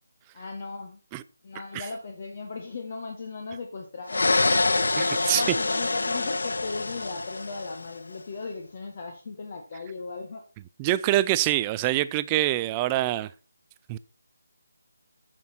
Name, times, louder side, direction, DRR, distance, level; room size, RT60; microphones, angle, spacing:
voice 1, 0.3-1.0 1.4-4.9 5.3-10.4, left 4 dB, 40° left, 1.4 m, -37 dB
sound 1, 4.1-8.0, left 3 dB, 70° left, 0.5 m, -26 dB
voice 2, 5.0-5.4 10.8-13.3 13.9-14.0, right 15 dB, 20° right, 0.4 m, -25 dB
9.2 x 6.1 x 4.3 m
figure-of-eight pair, 160°, 0 cm